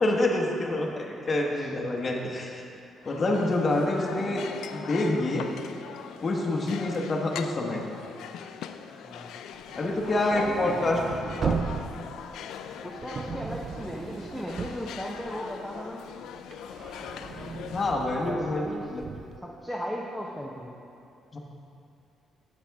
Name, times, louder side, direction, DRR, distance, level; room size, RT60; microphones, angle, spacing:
voice 1, 0.0-2.6 3.0-4.4 4.7-5.5 6.2-7.8 9.8-11.0 11.4-11.6 13.3-13.4 17.7-19.0 21.3-21.4, left 2 dB, 35° left, 0 dB, 1.1 m, -27 dB
sound 1, 3.0-17.9, left 8 dB, 85° left, 0.3 m, -41 dB
voice 2, 6.5-6.8 9.0-9.4 10.1-10.8 12.8-16.0 18.2-18.9 19.4-20.7, equal, ahead, -3 dB, 0.7 m, -37 dB
sound 2, 9.6-15.7 16.1-19.4, right 5 dB, 50° right, 0.4 m, -37 dB
8.6 x 7.4 x 3.5 m, 2.7 s
cardioid pair, 90°, 0 cm